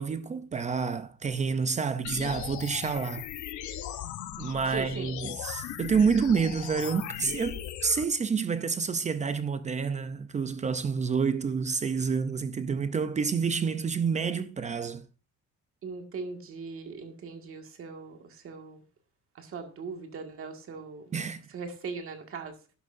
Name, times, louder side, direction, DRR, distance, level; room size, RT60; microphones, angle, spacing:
voice 1, 0.0-3.3 4.4-15.0 21.1-21.5, right 5 dB, 25° right, 0.5 m, -28 dB
sound 1, 2.0-8.0, left 11 dB, 80° left, 1.0 m, -38 dB
voice 2, 4.7-5.1 15.8-18.8 19.4-21.1 21.5-22.5, right 4 dB, 45° right, 1.9 m, -39 dB
11.5 x 11.0 x 2.6 m
cardioid pair, 175°, 30 cm